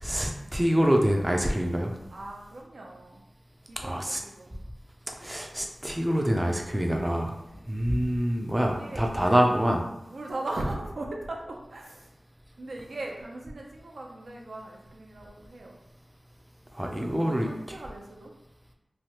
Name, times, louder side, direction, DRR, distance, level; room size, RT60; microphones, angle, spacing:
voice 1, 0.0-1.9 3.8-4.2 5.2-7.4 7.7-9.8 16.7-17.5, equal, 15° right, 1 dB, 0.4 m, -25 dB
voice 2, 2.1-3.2 3.7-4.6 7.5-7.7 8.6-9.4 10.1-12.1 12.6-15.8 16.8-18.3, right 2 dB, 85° right, -1 dB, 0.5 m, -39 dB
3.2 x 2.3 x 2.8 m, 0.89 s
wide cardioid pair, 80°, 0 cm